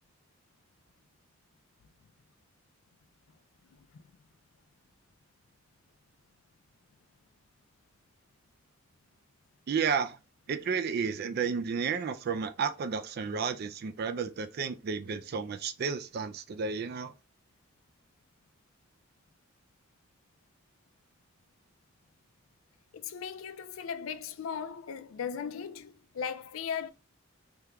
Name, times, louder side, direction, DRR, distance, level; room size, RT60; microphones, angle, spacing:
voice 1, 3.7-4.0 22.9-26.9, left 7 dB, 80° left, 0.4 m, -38 dB
voice 2, 9.7-10.2 10.5-17.1, right 6 dB, 50° right, 0.3 m, -32 dB
3.5 x 2.3 x 2.9 m
head